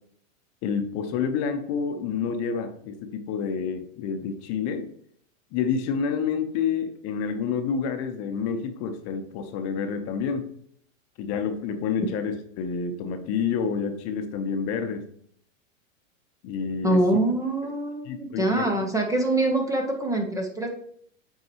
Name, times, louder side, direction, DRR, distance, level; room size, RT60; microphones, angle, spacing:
voice 1, 0.6-4.9 5.5-10.5 11.2-15.1 16.4-17.0 18.0-18.7, left 6 dB, 40° left, 7 dB, 1.0 m, -28 dB
voice 2, 16.8-20.7, right 1 dB, 10° right, 3 dB, 0.9 m, -24 dB
8.0 x 4.6 x 3.0 m, 0.63 s
hypercardioid pair, 125°, 39 cm